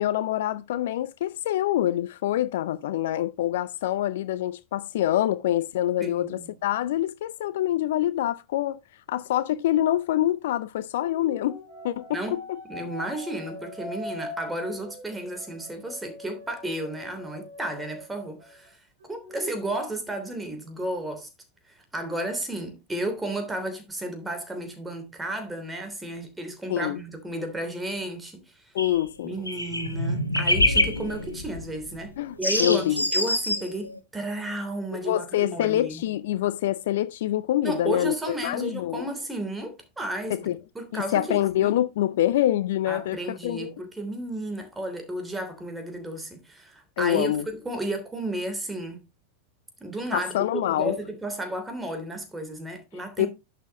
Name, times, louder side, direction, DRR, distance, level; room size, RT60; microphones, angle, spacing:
voice 1, 0.0-8.8 9.1-11.6 11.8-12.6 26.7-27.0 28.7-29.3 32.2-33.0 35.0-39.1 40.3-40.6 40.9-43.7 47.0-47.4 50.1-50.9 53.2-53.3, left 13 dB, 55° left, 0.5 m, -26 dB
voice 2, 6.0-6.5 12.1-12.4 12.7-18.8 19.1-21.3 21.7-28.6 29.2-32.1 32.4-36.1 37.6-41.7 42.9-49.1 49.8-53.3, right 1 dB, 10° right, 3.0 m, -33 dB
sound 1, 11.0-18.7 19.0-19.6, left 2 dB, 60° right, 5.0 m, -42 dB
sound 2, 28.8-29.0 29.3-32.0 32.4-34.0, left 1 dB, 85° left, 1.6 m, -25 dB
11.0 x 7.7 x 3.0 m
figure-of-eight pair, 90°, 0 cm